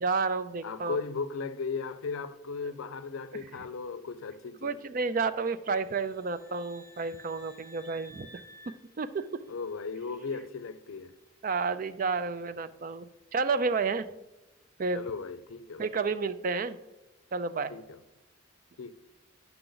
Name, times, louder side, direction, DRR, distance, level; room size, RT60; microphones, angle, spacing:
voice 1, 0.0-1.0 4.6-8.3 8.7-9.3 11.4-13.0 13.3-14.1 14.8-15.0 15.8-16.8 17.3-17.7, right 4 dB, 40° right, 0.4 m, -30 dB
voice 2, 0.6-4.8 9.5-11.1 14.9-15.8 17.7-18.0 18.8-18.9, left 4 dB, 85° left, 0.5 m, -36 dB
sound 1, 5.7-9.8, left 1 dB, 85° right, 1.2 m, -54 dB
10.0 x 5.8 x 3.9 m
head